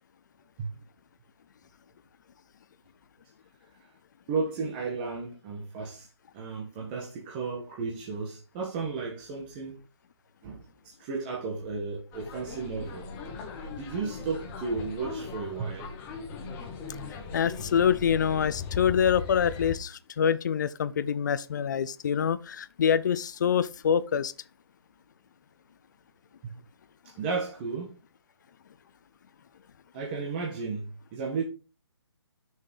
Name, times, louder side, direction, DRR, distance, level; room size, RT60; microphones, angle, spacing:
voice 1, 4.3-6.1 6.3-9.8 10.4-13.1 13.7-15.9 27.2-27.9 29.9-31.4, right 4 dB, 20° right, 1.7 m, -34 dB
sound 1, 12.1-19.8, left 5 dB, 15° left, 1.2 m, -39 dB
voice 2, 17.3-24.3, left 8 dB, 40° left, 0.6 m, -26 dB
6.8 x 6.6 x 5.4 m
hypercardioid pair, 160°, 15 cm